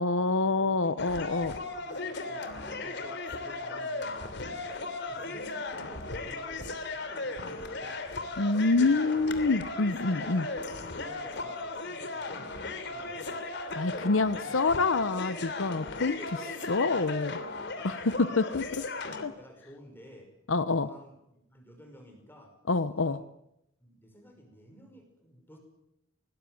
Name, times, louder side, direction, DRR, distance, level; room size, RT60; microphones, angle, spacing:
voice 1, 0.0-1.5 8.4-10.4 13.8-16.2 16.7-17.4 17.8-18.6 19.2-19.3 20.5-20.9 22.7-23.2, left 3 dB, 75° left, 13 dB, 0.9 m, -26 dB
voice 2, 0.5-4.7 5.1-8.0 8.7-9.3 10.1-13.4 13.8-14.8 15.8-17.9 18.3-20.3 20.7-22.5 22.9-23.2 23.8-25.6, equal, 10° left, 3 dB, 5.7 m, -52 dB
sound 1, 1.0-19.2, left 3 dB, 60° left, 3.1 m, -37 dB
22.0 x 20.0 x 9.2 m, 0.83 s
head